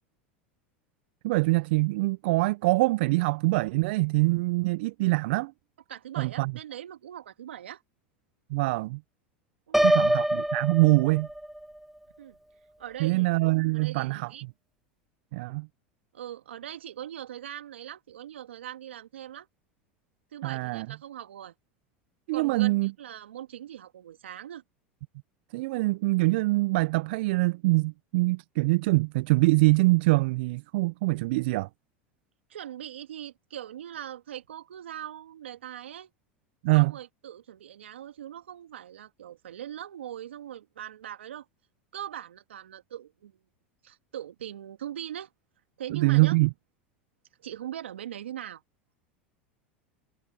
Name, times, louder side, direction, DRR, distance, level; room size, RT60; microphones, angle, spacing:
voice 1, 1.2-5.5 6.2-6.5 8.5-9.0 9.8-11.3 13.0-14.3 15.3-15.7 20.4-20.9 22.3-22.9 25.5-31.7 36.6-36.9 45.9-46.5, right 23 dB, 65° right, 0.4 m, -24 dB
voice 2, 5.9-7.8 9.7-10.2 12.2-12.4 12.8-13.3 13.7-14.4 16.1-19.5 20.3-21.5 22.3-24.6 32.5-36.1 36.7-41.5 41.9-43.4 43.8-45.3 45.8-46.4 47.4-48.6, right 11 dB, 85° right, 2.0 m, -41 dB
Piano, 9.7-11.7, right 1 dB, 5° right, 0.7 m, -25 dB
hypercardioid pair, 90°, 6 cm